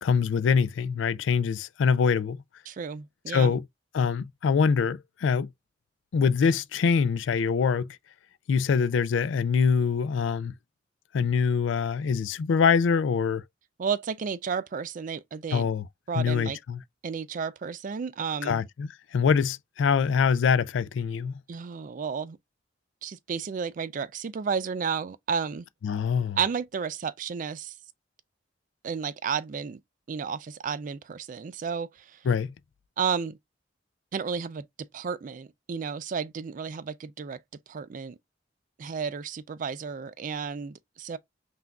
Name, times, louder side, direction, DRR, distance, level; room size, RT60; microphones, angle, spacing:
voice 1, 0.0-2.4 3.3-3.6 3.9-5.5 6.1-7.9 8.5-10.5 11.1-13.4 15.5-15.8 16.2-16.8 18.4-21.3 25.8-26.4 32.3-32.5, left 6 dB, 80° left, 0.3 m, -24 dB
voice 2, 2.7-3.5 13.8-15.7 16.1-16.6 17.0-18.6 21.5-22.4 23.0-25.7 26.4-27.8 28.8-29.8 30.1-32.2 33.0-33.4 34.1-34.7 34.9-37.4 37.7-38.2 38.8-41.2, right 6 dB, 45° right, 0.3 m, -32 dB
5.7 x 2.5 x 2.3 m
head